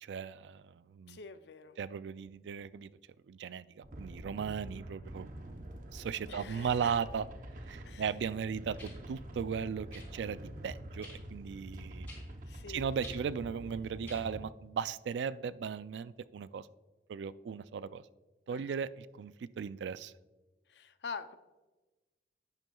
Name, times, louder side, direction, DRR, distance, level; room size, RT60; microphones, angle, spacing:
voice 1, 0.0-1.2 1.8-2.9 3.3-5.3 5.9-7.3 7.7-12.1 12.7-16.7 17.1-18.1 18.5-20.1, right 7 dB, 85° right, 17 dB, 0.3 m, -37 dB
voice 2, 1.1-1.8 6.3-6.9 7.8-8.1 12.4-13.3 18.5-18.8 20.7-21.4, left 5 dB, 75° left, 11 dB, 0.5 m, -46 dB
sound 1, 3.8-14.4, right 1 dB, 50° right, 0.8 m, -46 dB
sound 2, 7.7-7.8 8.8-9.0 9.9-10.1 11.0-11.2 12.1-12.2 13.0-13.2 14.0-14.2 15.2-15.3, left 1 dB, 10° left, 3.2 m, -49 dB
11.0 x 9.0 x 2.3 m, 1.2 s
head